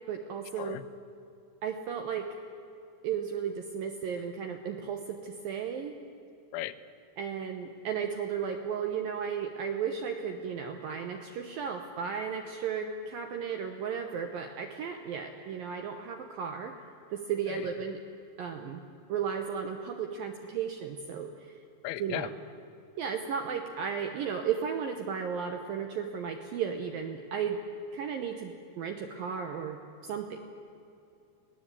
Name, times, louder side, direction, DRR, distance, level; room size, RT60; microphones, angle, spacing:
voice 1, 0.1-0.8 1.6-2.3 3.0-6.0 7.2-16.7 17.1-18.0 18.4-18.8 19.1-21.3 22.0-22.3 23.0-27.6 27.9-30.4, right 7 dB, 75° right, 5 dB, 2.2 m, -34 dB
voice 2, 21.8-22.3, left 15 dB, 85° left, 12 dB, 3.1 m, -35 dB
25.0 x 18.5 x 8.4 m, 2.7 s
omnidirectional pair, 5.3 m